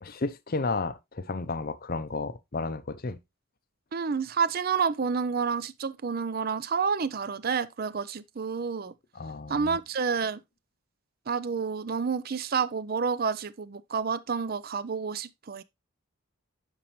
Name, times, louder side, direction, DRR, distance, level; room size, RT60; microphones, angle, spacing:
voice 1, 0.0-3.2 9.2-9.8, left 3 dB, 40° left, 0.6 m, -32 dB
voice 2, 3.9-8.9 9.5-10.4 11.3-15.6, right 5 dB, 45° right, 0.5 m, -29 dB
8.9 x 5.2 x 3.1 m
head